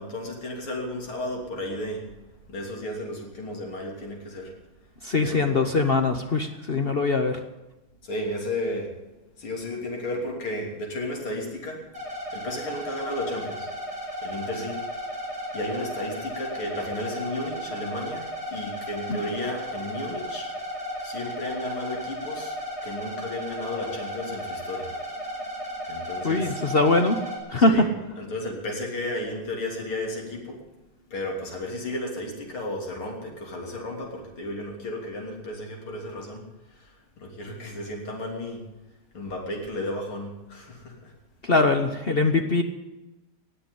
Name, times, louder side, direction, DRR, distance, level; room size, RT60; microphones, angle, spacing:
voice 1, 0.0-2.1 2.5-4.5 5.2-5.6 8.0-8.9 9.4-11.8 12.3-13.7 14.2-14.8 15.5-20.5 21.0-24.9 25.3-25.4 25.8-26.5 27.7-30.6 31.1-38.6 39.1-41.1, left 1 dB, 75° left, 1 dB, 4.1 m, -33 dB
voice 2, 5.0-7.4 19.1-19.2 26.2-27.2 27.5-27.9 41.4-42.6, left 3 dB, 55° left, 6 dB, 0.6 m, -22 dB
sound 1, 11.9-27.4, equal, 15° right, 4.3 m, -35 dB
19.0 x 7.0 x 9.8 m, 1.0 s
omnidirectional pair, 2.4 m